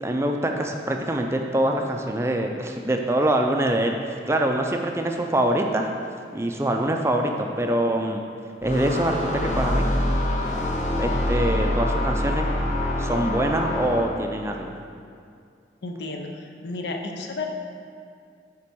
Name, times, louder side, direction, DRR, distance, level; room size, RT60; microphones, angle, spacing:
voice 1, 0.0-5.9 6.3-8.2 8.6-9.9 11.0-12.5 13.0-14.7, right 1 dB, 15° right, 3 dB, 0.4 m, -24 dB
sound 1, 8.6-14.3, left 1 dB, 40° left, 0.7 m, -25 dB
voice 2, 15.8-16.3 16.6-17.5, left 3 dB, 75° left, 3 dB, 0.7 m, -31 dB
5.8 x 4.4 x 6.1 m, 2.3 s
head